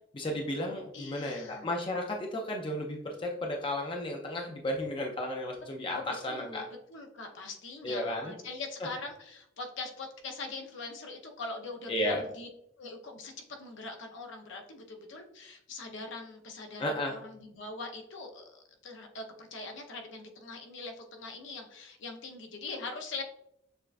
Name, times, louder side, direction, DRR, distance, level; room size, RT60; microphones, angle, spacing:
voice 1, 0.1-6.6 7.8-8.3 11.9-12.2 16.8-17.2, left 1 dB, 25° left, 1 dB, 0.4 m, -33 dB
voice 2, 0.9-1.7 5.9-12.5 12.8-13.3 13.6-23.2, left 3 dB, 65° left, 3 dB, 0.6 m, -42 dB
6.6 x 2.3 x 2.4 m, 0.75 s
head